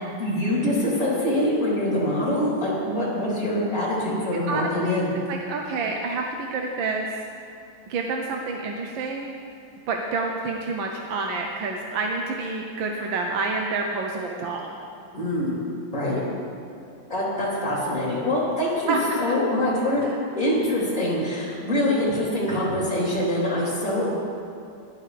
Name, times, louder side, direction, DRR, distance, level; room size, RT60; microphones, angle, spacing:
voice 1, 0.2-5.1 15.1-15.6 15.9-16.2 17.1-20.1 20.3-24.1, left 1 dB, 40° left, -7 dB, 3.9 m, -24 dB
voice 2, 4.5-5.0 5.3-7.1 7.9-9.3 9.9-14.7 18.9-19.0, right 3 dB, 70° right, 1 dB, 1.5 m, -28 dB
15.5 x 12.0 x 3.4 m, 2.6 s
omnidirectional pair, 2.4 m